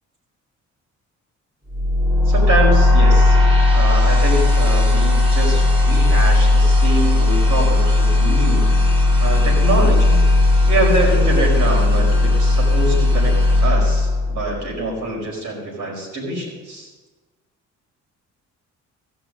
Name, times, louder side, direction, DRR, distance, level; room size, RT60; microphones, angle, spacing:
sound 1, 1.7-14.8, left 2 dB, 20° right, 3.6 m, -16 dB
voice 1, 2.2-3.4 3.7-8.6 9.2-10.2 10.7-13.3 13.6-16.9, right 2 dB, 80° right, 0 dB, 5.0 m, -24 dB
15.5 x 6.2 x 7.6 m, 1.2 s
cardioid pair, 90°, 30 cm